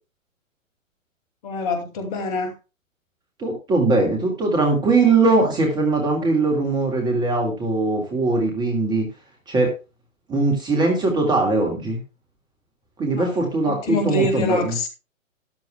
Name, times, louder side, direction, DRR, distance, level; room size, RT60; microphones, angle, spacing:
voice 1, 1.4-2.5 13.2-14.9, left 2 dB, 30° left, 2.4 m, -25 dB
voice 2, 3.4-9.1 9.5-9.7 10.3-12.0 13.0-14.7, right 3 dB, 10° right, 1.9 m, -20 dB
13.5 x 12.0 x 2.3 m
figure-of-eight pair, 130°, 39 cm